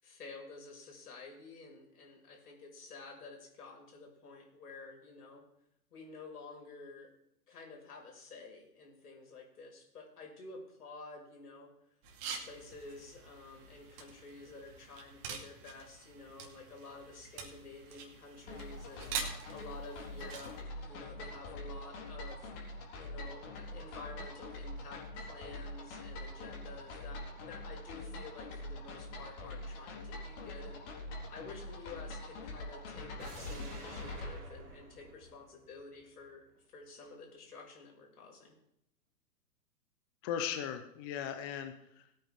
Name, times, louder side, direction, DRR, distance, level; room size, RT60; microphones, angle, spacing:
voice 1, 0.0-5.4 5.9-7.1 7.5-11.7 12.4-30.9 31.3-38.6, left 3 dB, 65° left, 0 dB, 5.7 m, -51 dB
sound 1, 12.0-20.6, right 6 dB, 35° right, 2.5 m, -45 dB
sound 2, 18.5-34.3, left 1 dB, 35° left, 4.1 m, -44 dB
sound 3, 33.2-36.3 36.6-36.7, right 2 dB, 65° right, 3.4 m, -50 dB
voice 2, 40.2-42.3, left 8 dB, 15° left, 7 dB, 0.5 m, -38 dB
20.0 x 9.0 x 3.6 m, 0.75 s
figure-of-eight pair, 120°, 49 cm